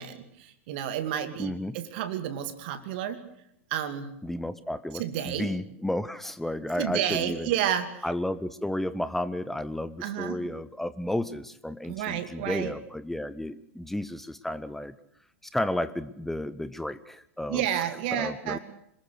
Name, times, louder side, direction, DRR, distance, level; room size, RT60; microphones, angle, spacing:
voice 1, 0.0-3.2 3.7-4.1 4.9-5.5 6.8-8.1 10.0-10.4 11.8-12.7 17.5-18.6, right 10 dB, 50° right, 9 dB, 2.6 m, -31 dB
voice 2, 1.4-1.8 4.2-7.5 8.0-15.0 15.4-17.6 18.1-18.6, left 1 dB, 5° left, 15 dB, 0.9 m, -32 dB
26.5 x 21.0 x 6.5 m, 0.77 s
figure-of-eight pair, 95°, 7 cm